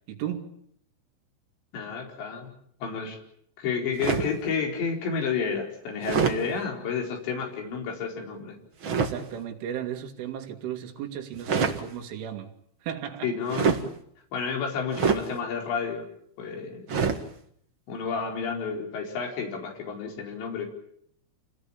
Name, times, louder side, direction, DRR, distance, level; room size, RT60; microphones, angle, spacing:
voice 1, 0.1-0.5 8.9-12.5 12.8-13.3, right 10 dB, 90° right, 4.8 m, -35 dB
voice 2, 1.7-2.5 2.8-3.2 3.6-8.6 13.2-13.8 14.3-16.0 16.4-17.0 17.9-20.7, left 5 dB, 65° left, 6.7 m, -31 dB
sound 1, 4.0-4.4 6.0-6.4 8.8-9.1 11.3-11.8 13.5-13.9 14.9-15.3 16.9-17.2, right 6 dB, 70° right, 1.1 m, -25 dB
28.0 x 19.0 x 8.8 m
omnidirectional pair, 5.4 m